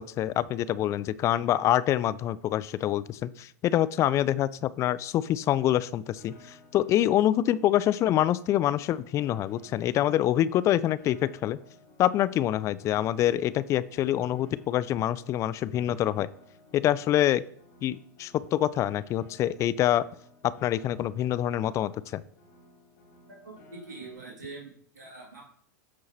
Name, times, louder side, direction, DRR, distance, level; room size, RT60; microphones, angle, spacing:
voice 1, 0.0-11.6 12.0-16.3 16.7-17.4 17.8-20.0 20.4-22.2, left 12 dB, 30° left, 18 dB, 0.3 m, -26 dB
Piano, 5.0-24.1, left 2 dB, 60° left, 3.6 m, -56 dB
voice 2, 23.7-25.5, right 3 dB, 80° right, -4 dB, 2.2 m, -44 dB
13.5 x 4.7 x 2.8 m, 0.62 s
hypercardioid pair, 100°, 10 cm